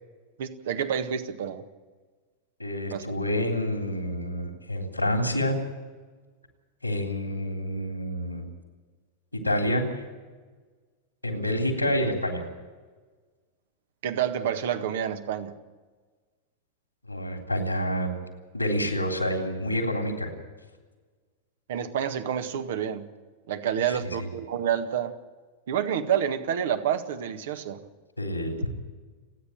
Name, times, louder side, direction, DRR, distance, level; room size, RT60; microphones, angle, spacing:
voice 1, 0.4-1.6 2.9-3.0 14.0-15.5 21.7-23.0 23.5-25.1 25.7-27.8, right 9 dB, 55° right, 9 dB, 1.6 m, -28 dB
voice 2, 2.6-5.6 6.8-8.5 9.3-9.8 11.2-12.4 17.1-18.1 18.5-20.3 24.0-24.3 28.2-28.7, equal, 85° left, 3 dB, 3.5 m, -28 dB
29.5 x 10.0 x 8.9 m, 1.4 s
figure-of-eight pair, 90°, 0 cm